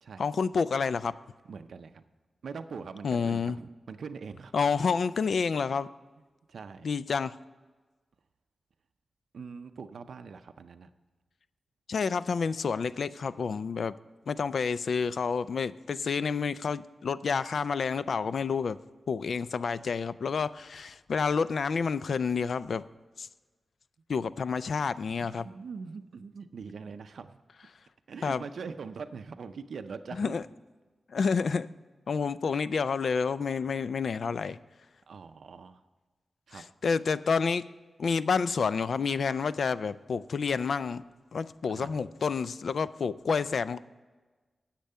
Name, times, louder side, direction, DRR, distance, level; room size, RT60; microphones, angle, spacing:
voice 1, 0.2-1.1 3.0-3.6 4.5-5.9 6.8-7.4 11.9-13.9 14.3-18.8 19.1-22.8 23.2-23.3 24.1-25.4 28.2-28.4 30.2-30.4 31.1-31.7 32.1-34.6 36.5-37.6 38.0-41.0 41.3-43.8, left 5 dB, 70° left, 15 dB, 0.4 m, -29 dB
voice 2, 1.4-2.0 2.4-4.5 6.5-6.9 9.3-10.9 25.2-27.4 28.1-30.4 35.1-35.8 36.5-36.6 41.7-42.0, right 5 dB, 80° right, 9 dB, 0.5 m, -42 dB
10.5 x 7.5 x 5.5 m, 1.3 s
wide cardioid pair, 130°, 0 cm